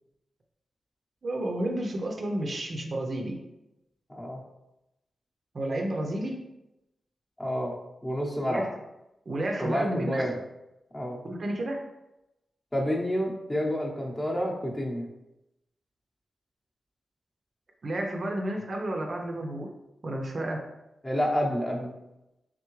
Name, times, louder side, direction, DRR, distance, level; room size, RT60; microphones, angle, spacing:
voice 1, 1.2-3.4 5.5-6.4 8.4-8.7 9.3-10.3 11.3-11.8 17.8-19.7 20.0-20.7, right 1 dB, 45° right, 1 dB, 0.5 m, -31 dB
voice 2, 4.1-4.4 7.4-7.8 8.0-8.7 9.6-10.3 10.9-11.2 12.7-15.1 21.0-21.9, equal, 15° left, -2 dB, 0.8 m, -29 dB
3.5 x 3.5 x 3.1 m, 0.91 s
wide cardioid pair, 125°, 0 cm